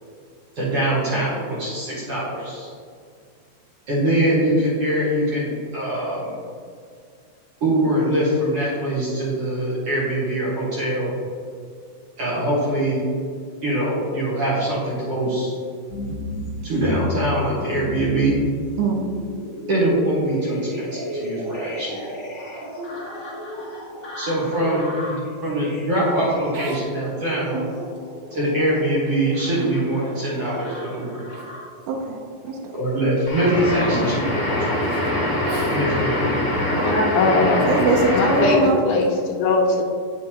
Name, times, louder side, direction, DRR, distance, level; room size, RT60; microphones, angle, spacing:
voice 1, 0.6-2.7 3.9-6.3 7.6-11.1 12.2-13.0 13.6-15.5 16.6-18.4 19.7-22.1 24.2-27.6 28.3-31.2 32.7-34.8 35.6-36.3, right 1 dB, 60° right, -6 dB, 1.6 m, -23 dB
sound 1, 15.9-31.8 32.5-33.1 33.6-33.7, equal, 65° left, 0.7 m, -34 dB
voice 2, 22.8-23.1 26.5-26.8 27.5-27.9 31.3-31.4 31.9-32.2 32.4-32.6 34.8-35.1 35.4-36.0 37.7-38.8, right 3 dB, 75° right, 0 dB, 2.5 m, -24 dB
sound 2, 33.3-38.8, left 1 dB, 45° left, 1.5 m, -23 dB
voice 3, 36.8-37.6 38.1-39.8, left 2 dB, 80° left, -1 dB, 2.7 m, -20 dB
9.2 x 6.4 x 2.9 m, 2.2 s
omnidirectional pair, 4.5 m